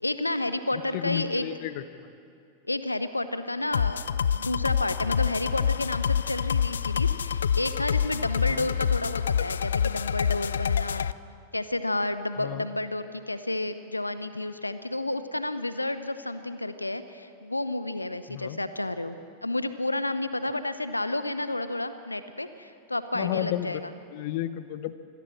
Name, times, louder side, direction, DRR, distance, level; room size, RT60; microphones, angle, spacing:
voice 1, 0.0-1.4 2.7-11.0 11.5-23.9, left 2 dB, 85° left, 12 dB, 0.9 m, -31 dB
voice 2, 0.9-1.8 8.5-8.7 12.4-12.7 18.3-18.6 23.1-23.8 24.1-24.9, left 13 dB, 50° left, 14 dB, 0.8 m, -32 dB
sound 1, 3.7-11.1, left 8 dB, 65° left, 0.4 m, -27 dB
25.0 x 17.5 x 6.3 m, 2.5 s
figure-of-eight pair, 90°, 0 cm